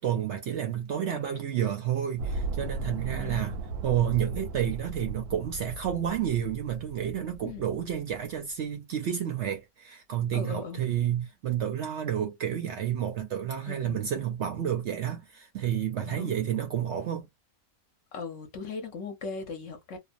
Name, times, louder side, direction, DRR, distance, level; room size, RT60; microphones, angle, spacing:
voice 1, 0.0-17.3, right 10 dB, 65° right, 0.7 m, -30 dB
sound 1, 2.2-8.5, right 3 dB, 85° right, 1.1 m, -37 dB
voice 2, 2.9-3.7 7.4-7.7 10.3-10.9 13.7-14.1 16.0-16.5 18.1-20.0, left 4 dB, 60° left, 1.0 m, -39 dB
2.7 x 2.1 x 2.5 m
omnidirectional pair, 1.6 m